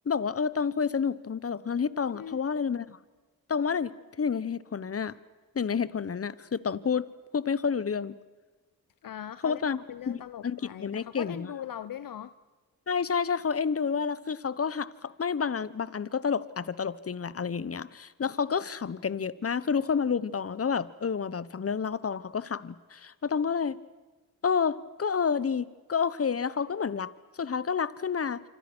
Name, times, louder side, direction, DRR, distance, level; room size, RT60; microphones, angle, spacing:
voice 1, 0.1-3.0 3.5-5.2 5.5-7.1 7.3-8.2 9.4-9.8 10.1-10.2 10.4-11.5 12.9-23.8 24.4-27.1 27.4-28.4, left 6 dB, 40° left, 17 dB, 1.1 m, -29 dB
voice 2, 9.0-9.6 9.9-12.3, left 10 dB, 60° left, 14 dB, 0.8 m, -40 dB
26.5 x 26.0 x 6.3 m, 1.2 s
cardioid pair, 55°, 37 cm